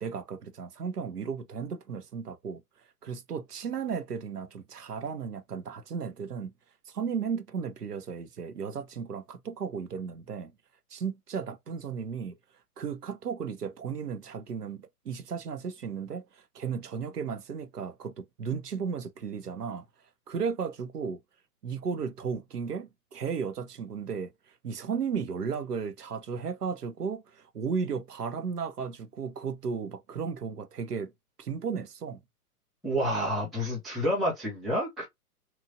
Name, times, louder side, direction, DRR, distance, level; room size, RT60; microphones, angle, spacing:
voice 1, 0.0-2.6 3.0-6.5 6.9-10.5 10.9-12.3 12.8-19.8 20.3-21.2 21.6-24.3 24.6-31.1 31.4-32.2, right 6 dB, 80° right, 0.7 m, -35 dB
voice 2, 32.8-35.1, equal, ahead, 0.7 m, -29 dB
2.9 x 2.4 x 2.6 m
figure-of-eight pair, 115°, 46 cm